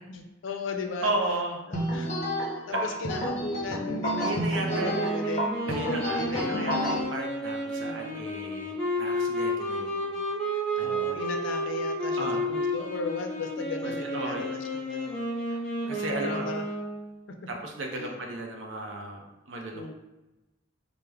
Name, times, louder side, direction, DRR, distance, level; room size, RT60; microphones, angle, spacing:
voice 1, 0.1-1.1 1.7-2.1 2.7-4.3 4.6-6.8 7.8-8.3 10.8-12.2 12.5-15.2 16.1-16.6 17.9-18.2 19.7-19.9, left 3 dB, 80° left, 4 dB, 0.4 m, -36 dB
voice 2, 1.0-1.6 2.7-2.9 4.2-5.0 5.7-10.2 10.8-11.2 12.2-12.5 13.8-14.4 15.5-15.6 15.9-16.5 17.5-19.2 19.5-19.9, right 2 dB, 80° right, 1 dB, 0.6 m, -34 dB
sound 1, 1.7-7.0, equal, 35° left, 0.7 m, -30 dB
Wind instrument woodwind instrument, 4.6-17.1, equal, 5° left, 1.2 m, -31 dB
3.3 x 2.1 x 3.4 m, 1.0 s
head